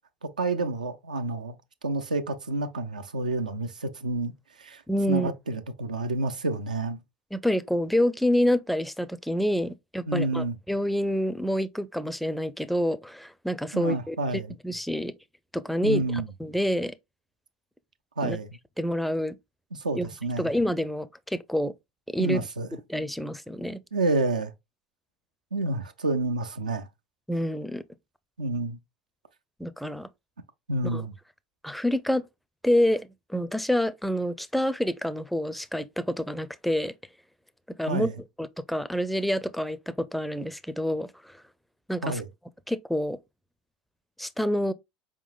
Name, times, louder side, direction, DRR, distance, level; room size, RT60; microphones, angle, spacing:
voice 1, 0.2-1.6 1.8-4.3 4.6-4.8 5.1-7.0 10.1-10.6 13.7-14.6 15.8-16.3 18.2-18.6 19.7-20.5 22.2-22.7 23.9-24.5 25.5-26.9 28.4-28.8 30.7-31.1 37.9-38.1 42.0-42.3, right 2 dB, 85° right, 0.4 m, -29 dB
voice 2, 4.9-5.3 7.3-14.2 14.6-15.1 15.5-16.9 18.2-18.4 18.8-19.4 19.9-20.1 20.4-21.7 22.1-22.4 22.9-23.8 27.3-27.8 29.6-30.1 30.9-31.0 31.6-32.2 32.6-33.0 33.3-36.9 37.8-38.1 38.4-41.1 41.9-42.2 42.7-43.2 44.2-44.7, equal, ahead, 0.4 m, -27 dB
4.6 x 3.6 x 2.3 m
figure-of-eight pair, 70°, 4 cm